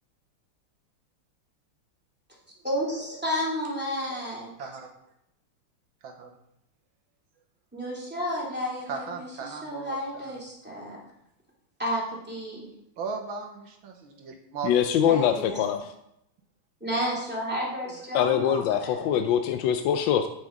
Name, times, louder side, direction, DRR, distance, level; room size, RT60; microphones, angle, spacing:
voice 1, 2.6-4.7 7.7-11.0 11.8-12.7 15.0-15.7 16.8-19.0, equal, 5° right, -5 dB, 2.5 m, -32 dB
voice 2, 4.6-4.9 6.0-6.3 8.9-10.4 13.0-14.7, right 5 dB, 70° right, 3 dB, 1.8 m, -37 dB
voice 3, 14.6-15.9 18.1-20.3, left 9 dB, 70° left, 8 dB, 1.2 m, -23 dB
8.6 x 6.4 x 5.1 m, 0.79 s
omnidirectional pair, 2.4 m